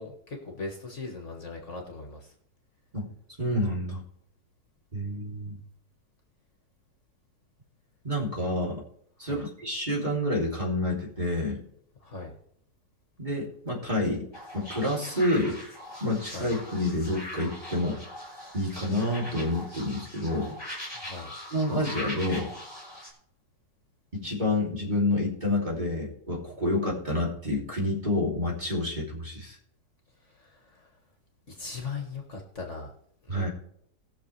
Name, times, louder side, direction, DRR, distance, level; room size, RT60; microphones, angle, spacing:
voice 1, 0.0-2.3 9.2-9.4 12.0-12.3 16.3-16.5 21.0-21.3 30.2-30.9 31.5-32.9 33.2-33.5, left 4 dB, 45° left, 2 dB, 1.9 m, -39 dB
voice 2, 3.4-4.0 4.9-5.6 8.0-8.8 9.2-11.6 13.2-14.3 14.5-15.6 16.0-18.0 18.5-20.5 21.5-22.5 24.1-29.6 33.3-33.5, left 1 dB, 25° right, -3 dB, 3.1 m, -28 dB
sound 1, 14.3-23.1, left 1 dB, 15° left, 3.6 m, -41 dB
19.5 x 6.8 x 3.3 m, 0.68 s
omnidirectional pair, 1.8 m